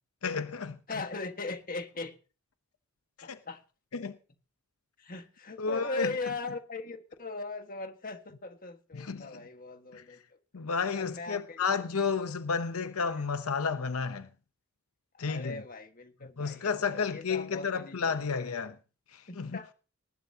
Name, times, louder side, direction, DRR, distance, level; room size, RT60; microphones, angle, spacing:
voice 1, 0.2-0.8 3.3-3.4 3.9-4.2 5.6-6.1 8.9-9.4 9.9-10.0 10.5-14.3 15.2-15.6 16.4-18.7 19.1-19.5, left 5 dB, 75° left, 0.8 m, -31 dB
voice 2, 0.9-2.1 3.2-3.6 5.0-10.4 10.9-11.6 13.1-13.2 15.1-18.5 19.3-19.7, left 3 dB, 40° left, 1.6 m, -39 dB
19.5 x 11.0 x 2.8 m
head